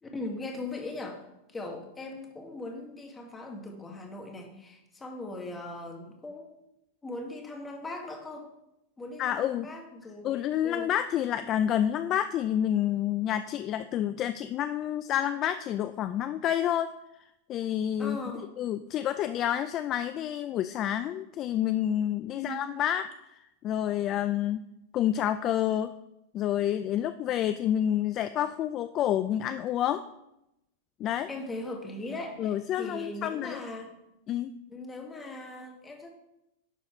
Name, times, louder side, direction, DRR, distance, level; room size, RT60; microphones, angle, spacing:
voice 1, 0.0-6.5 7.0-8.5 9.0-10.9 18.0-18.5 22.3-22.6 31.3-33.9 34.7-36.1, left 2 dB, 15° left, 1 dB, 1.5 m, -39 dB
voice 2, 9.2-9.7 10.2-16.9 17.5-18.2 18.6-24.6 24.9-25.9 26.3-30.0 31.0-31.3 32.4-33.6 34.3-34.5, left 11 dB, 35° left, 11 dB, 0.3 m, -29 dB
11.0 x 4.1 x 4.4 m, 0.87 s
supercardioid pair, 135°, 0 cm